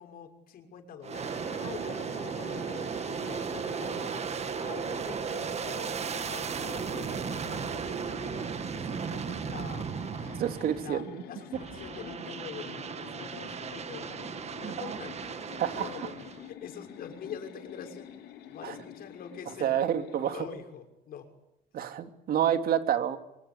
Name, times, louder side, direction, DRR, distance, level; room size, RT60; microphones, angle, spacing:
voice 1, 0.0-1.3 1.6-4.2 4.6-5.9 6.2-9.9 10.2-10.5 10.8-14.3 14.6-15.2 15.8-16.1 16.5-18.2 18.5-19.8 20.3-21.3, left 7 dB, 60° left, 6 dB, 6.1 m, -45 dB
Aircraft, 1.0-11.1 11.5-16.5, right 6 dB, 40° right, 1.9 m, -36 dB
sound 1, 1.1-20.4, left 10 dB, 80° left, 6.0 m, -47 dB
voice 2, 10.4-11.2 14.6-15.0 15.6-16.1 18.6-18.8 19.6-20.4 21.7-23.2, right 10 dB, 60° right, 7 dB, 3.0 m, -29 dB
26.0 x 25.0 x 8.5 m, 0.87 s
cardioid pair, 110°, 17 cm